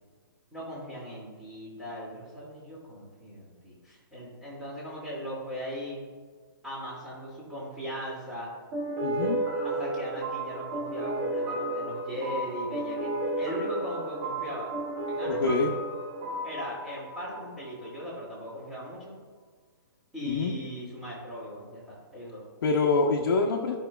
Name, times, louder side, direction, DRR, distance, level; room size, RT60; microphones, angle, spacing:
voice 1, 0.5-6.0 6.6-8.5 9.6-14.7 15.1-15.6 16.4-19.2 20.1-22.4, equal, 5° right, -7 dB, 2.3 m, -38 dB
sound 1, 8.7-18.0, right 1 dB, 20° right, 0.8 m, -33 dB
voice 2, 9.0-9.4 15.3-15.7 20.2-20.5 22.6-23.8, left 3 dB, 60° left, -1 dB, 0.9 m, -25 dB
14.5 x 5.5 x 2.3 m, 1.5 s
hypercardioid pair, 160°, 12 cm